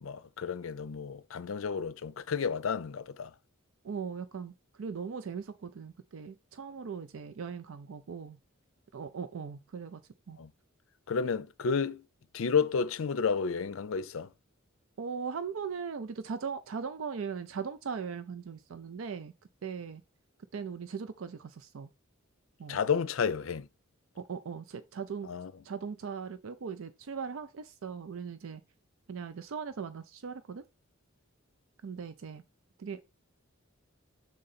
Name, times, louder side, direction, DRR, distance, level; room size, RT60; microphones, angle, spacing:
voice 1, 0.0-3.3 10.4-10.5 11.1-12.0 12.3-14.3 22.7-23.7 25.2-25.5, left 6 dB, 70° left, 0.5 m, -31 dB
voice 2, 3.8-8.4 8.9-10.0 10.3-10.4 15.0-19.3 19.6-20.0 20.5-21.9 22.6-22.8 24.2-25.3 25.6-28.6 29.1-30.6 31.8-32.4 32.8-33.0, right 6 dB, 75° right, 0.5 m, -39 dB
6.4 x 3.8 x 4.1 m
head